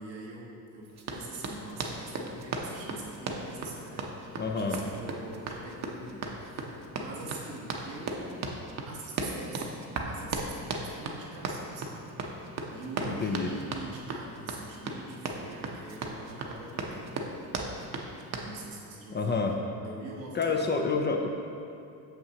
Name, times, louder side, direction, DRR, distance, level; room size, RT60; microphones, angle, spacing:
voice 1, 0.0-17.3 18.4-19.6 19.8-20.7, right 3 dB, 85° right, -3 dB, 1.3 m, -44 dB
Run, 1.0-18.5, right 3 dB, 35° right, 0.7 m, -36 dB
voice 2, 4.4-4.8 13.1-13.5 19.1-19.6 20.3-21.3, left 4 dB, 25° left, 2 dB, 0.4 m, -28 dB
6.4 x 5.8 x 2.8 m, 2.6 s
hypercardioid pair, 75°, 49 cm